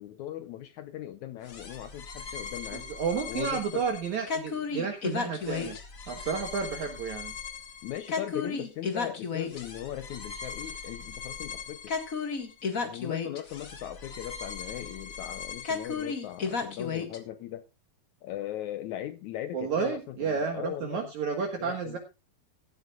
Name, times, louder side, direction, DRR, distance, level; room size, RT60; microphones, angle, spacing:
voice 1, 0.0-2.9 3.3-3.9 7.8-11.9 12.8-17.7 18.2-21.1 21.6-22.0, left 12 dB, 80° left, 1.7 m, -39 dB
sound 1, 1.5-17.2, left 5 dB, 45° left, 1.1 m, -35 dB
voice 2, 2.7-5.8 6.1-7.3 19.5-22.0, right 6 dB, 60° right, 2.6 m, -31 dB
16.0 x 13.0 x 2.4 m
omnidirectional pair, 4.3 m